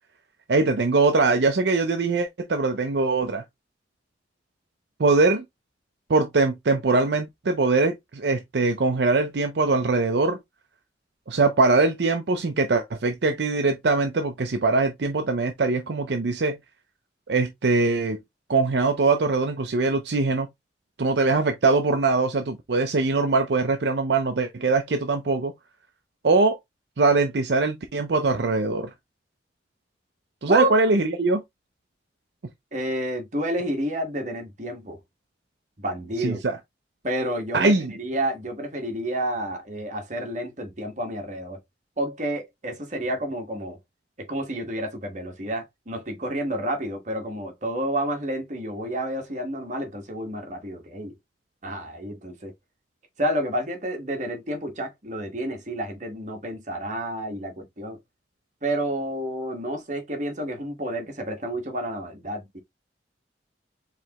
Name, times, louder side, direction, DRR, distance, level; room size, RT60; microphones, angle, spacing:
voice 1, 0.5-3.4 5.0-5.4 6.1-10.4 11.3-16.6 17.3-18.2 18.5-20.5 21.0-25.5 26.2-26.6 27.0-28.9 30.4-31.4 36.2-36.6 37.5-37.9, right 3 dB, 70° right, 0.6 m, -22 dB
voice 2, 32.7-35.0 35.8-36.4 37.0-41.6 42.0-43.8 44.2-51.1 51.6-52.5 53.2-58.0 58.6-62.6, right 1 dB, 45° right, 1.4 m, -30 dB
4.8 x 3.3 x 2.9 m
head